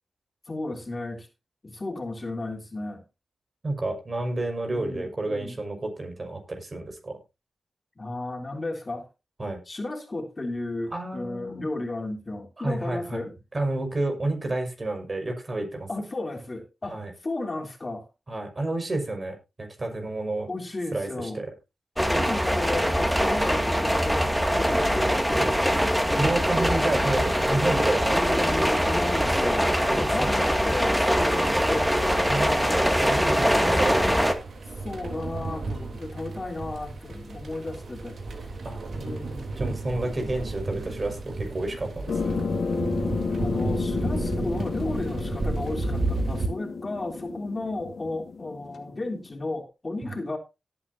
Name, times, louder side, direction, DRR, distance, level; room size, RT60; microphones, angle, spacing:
voice 1, 0.5-1.3 1.6-3.0 4.7-5.6 8.0-9.1 9.7-13.3 15.9-18.1 20.5-21.4 22.1-25.5 28.1-32.0 33.1-34.1 34.8-38.5 38.9-39.8 43.4-50.4, left 2 dB, 40° left, 3.3 m, -34 dB
voice 2, 3.6-7.2 9.4-9.6 10.9-11.7 12.6-13.2 13.5-15.9 16.8-17.1 18.3-20.5 20.9-21.5 26.2-28.4 29.9-30.3 32.3-34.3 38.6-38.8 39.6-42.4 50.0-50.1, right 2 dB, 45° right, 5.6 m, -30 dB
sound 1, 22.0-34.3, equal, 5° right, 2.3 m, -23 dB
sound 2, 32.3-46.5, right 3 dB, 75° right, 3.4 m, -33 dB
sound 3, 42.1-49.3, left 4 dB, 80° left, 2.3 m, -31 dB
18.0 x 8.6 x 2.8 m
cardioid pair, 50°, 0 cm